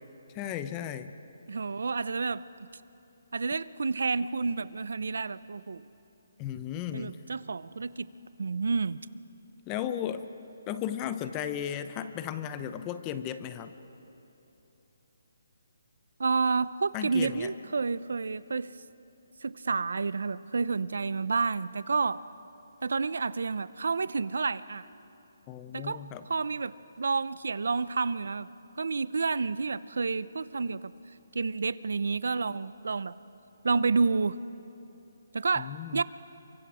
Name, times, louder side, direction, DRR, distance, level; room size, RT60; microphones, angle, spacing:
voice 1, 0.3-1.1 6.4-7.2 9.7-10.3 10.7-13.7 16.9-17.5 25.5-26.3 35.6-36.0, left 10 dB, 15° left, 11 dB, 0.7 m, -35 dB
voice 2, 1.5-2.4 3.3-5.8 6.9-8.1 8.4-9.0 16.2-18.7 19.4-22.2 22.8-24.9 25.7-26.0 26.3-30.9 31.3-33.1 33.6-34.4 35.3-36.0, right 4 dB, 75° right, 17 dB, 0.6 m, -30 dB
29.5 x 24.5 x 5.0 m, 3.0 s
hypercardioid pair, 170°, 0 cm